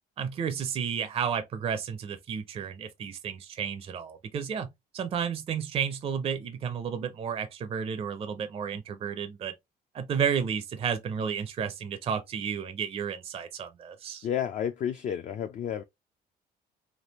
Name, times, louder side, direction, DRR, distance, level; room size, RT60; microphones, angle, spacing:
voice 1, 0.2-4.7 4.9-9.5 9.9-14.3, right 7 dB, 35° right, 0.4 m, -32 dB
voice 2, 14.2-15.8, left 9 dB, 45° left, 0.4 m, -31 dB
3.3 x 2.4 x 2.8 m
cardioid pair, 110°, 17 cm